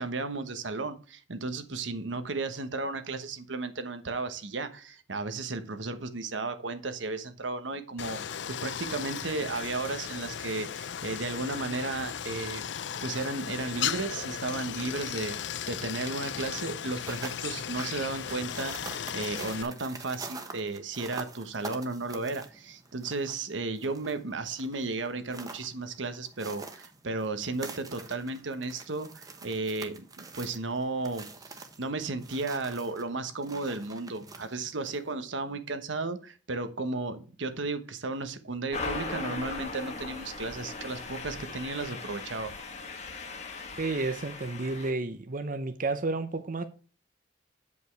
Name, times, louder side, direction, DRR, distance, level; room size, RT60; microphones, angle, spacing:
voice 1, 0.0-12.6 13.0-15.4 15.7-42.5, right 3 dB, 85° right, 1.2 m, -34 dB
Stream, 8.0-19.6, left 9 dB, 70° left, 0.5 m, -36 dB
sound 1, 16.8-35.1, right 3 dB, 20° right, 1.0 m, -46 dB
sound 2, 38.7-44.9, left 3 dB, 40° left, 1.4 m, -38 dB
voice 2, 43.8-46.6, right 3 dB, 45° right, 0.7 m, -31 dB
8.6 x 5.4 x 4.6 m
head